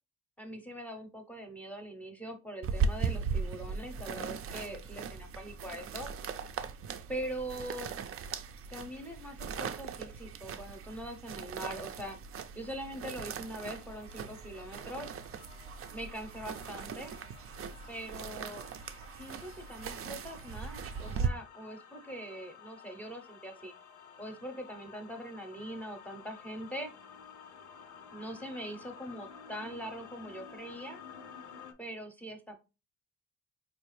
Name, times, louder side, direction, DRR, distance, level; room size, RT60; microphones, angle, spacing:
voice 1, 0.4-6.1 7.1-7.9 8.7-12.2 12.5-15.1 15.9-17.2 17.9-18.6 19.1-23.7 24.2-26.9 28.1-31.0 31.8-32.6, right 1 dB, 5° left, 5 dB, 0.7 m, -42 dB
sound 1, 2.6-21.3, right 6 dB, 50° right, 0.4 m, -38 dB
sound 2, 13.4-31.7, left 7 dB, 75° left, 0.6 m, -53 dB
4.3 x 2.4 x 3.2 m, 0.30 s
cardioid pair, 90°, 30 cm